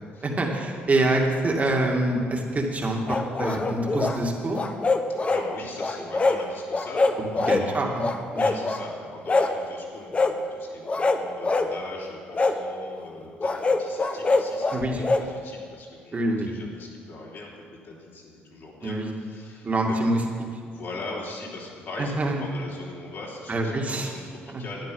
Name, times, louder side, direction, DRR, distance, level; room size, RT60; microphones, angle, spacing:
voice 1, 0.2-4.6 7.5-8.0 8.3-8.5 14.7-15.0 16.1-16.5 18.8-19.1 19.6-20.2 22.0-22.4 23.5-24.1 24.5-24.6, right 2 dB, 35° right, 1 dB, 2.2 m, -25 dB
sound 1, 3.1-4.2 4.5-5.5 5.8-6.4 6.7-7.7 8.0-8.8 9.3-9.6 10.1-10.4 10.9-11.7 12.3-12.6 13.4-15.3, left 3 dB, 30° left, 0.9 m, -24 dB
voice 2, 5.1-7.9 8.3-14.8 15.1-17.5 17.8-20.0 20.7-24.9, left 2 dB, 60° left, -4 dB, 3.6 m, -40 dB
12.0 x 10.0 x 5.5 m, 2.1 s
supercardioid pair, 80°, 4 cm